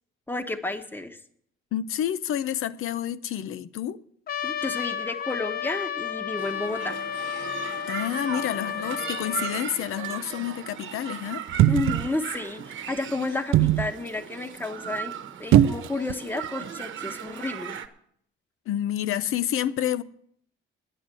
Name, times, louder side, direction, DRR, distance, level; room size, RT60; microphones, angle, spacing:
voice 1, 0.3-1.2 4.4-7.0 11.7-15.1 15.4-17.8, left 2 dB, 10° left, 1.0 m, -31 dB
voice 2, 1.7-4.0 7.9-11.4 18.7-20.0, left 11 dB, 85° left, 0.6 m, -29 dB
Trumpet, 4.3-9.6, left 9 dB, 45° left, 0.6 m, -32 dB
sound 1, 6.4-17.9, right 9 dB, 65° right, 1.1 m, -37 dB
sound 2, 11.5-12.2 13.5-13.9 15.5-16.1 16.4-16.5, right 13 dB, 85° right, 0.4 m, -19 dB
9.9 x 9.9 x 7.5 m
cardioid pair, 130°, 21 cm